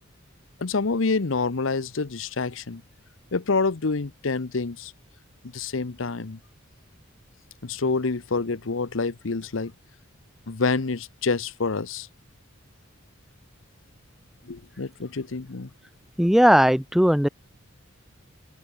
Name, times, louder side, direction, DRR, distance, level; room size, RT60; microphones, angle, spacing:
voice 1, 0.6-2.8 3.3-4.9 5.5-6.4 7.6-9.7 10.5-12.1 14.4-15.7, left 4 dB, 80° left, 0.9 m, -27 dB
voice 2, 16.2-17.3, equal, ahead, 0.4 m, -18 dB
head